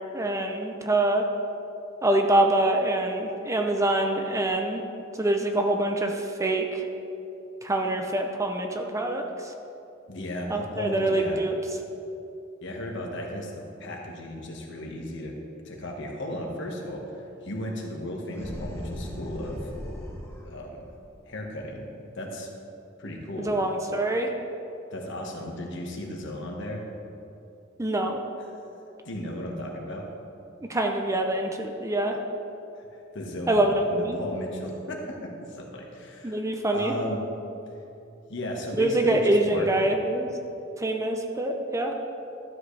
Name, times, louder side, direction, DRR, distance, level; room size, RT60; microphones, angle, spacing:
voice 1, 0.1-1.2 2.0-4.8 5.1-6.8 7.6-9.5 10.5-11.5 23.4-24.3 27.8-28.2 30.7-32.2 33.5-34.2 36.2-37.0 38.8-40.3 40.8-41.9, right 1 dB, 15° right, 3 dB, 0.6 m, -25 dB
voice 2, 10.1-11.5 12.6-15.3 15.6-19.7 20.3-20.9 21.3-21.9 22.1-22.5 23.0-23.6 24.9-26.9 29.0-30.0 32.7-36.4 36.7-37.2 38.3-40.0, left 1 dB, 65° left, 0 dB, 1.4 m, -35 dB
sound 1, 18.3-20.5, equal, 15° left, 1.1 m, -37 dB
12.5 x 7.8 x 3.3 m, 2.8 s
head